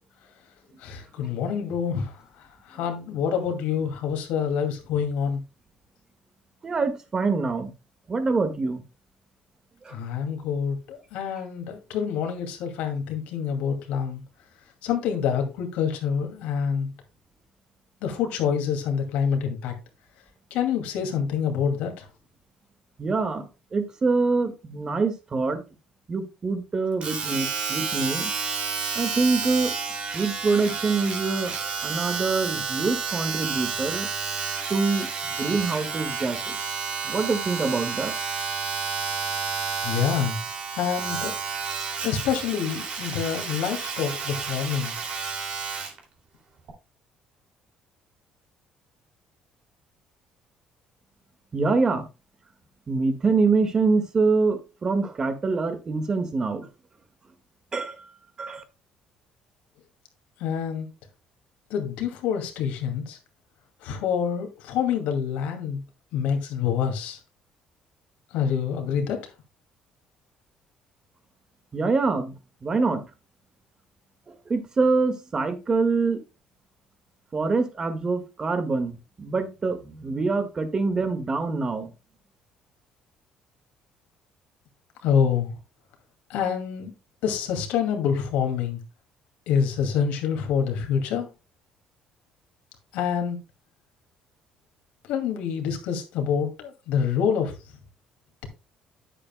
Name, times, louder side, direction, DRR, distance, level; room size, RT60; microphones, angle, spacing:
voice 1, 0.8-2.1 2.7-5.4 9.9-14.2 14.8-16.9 18.0-19.7 20.5-22.0 39.8-40.4 40.8-41.4 42.0-44.9 60.4-60.9 61.7-63.2 63.8-65.8 66.1-67.2 68.3-69.2 85.0-85.5 86.3-86.9 87.2-88.8 89.5-91.3 92.9-93.4 95.1-97.5, left 7 dB, 85° left, 2.4 m, -26 dB
voice 2, 6.6-7.7 8.1-8.8 9.9-10.0 23.0-23.4 23.7-25.6 26.1-28.3 29.0-29.7 30.1-31.5 31.8-34.1 34.7-35.1 35.4-36.6 37.0-38.1 51.5-52.1 52.9-56.7 57.7-58.0 58.4-58.6 71.7-72.4 72.6-73.0 74.5-76.2 77.3-81.9, right 4 dB, 30° right, 1.8 m, -25 dB
Domestic sounds home sounds, 27.0-46.0 46.7-46.8, right 5 dB, 50° right, 2.7 m, -31 dB
10.0 x 8.2 x 2.2 m
cardioid pair, 105°, 2 cm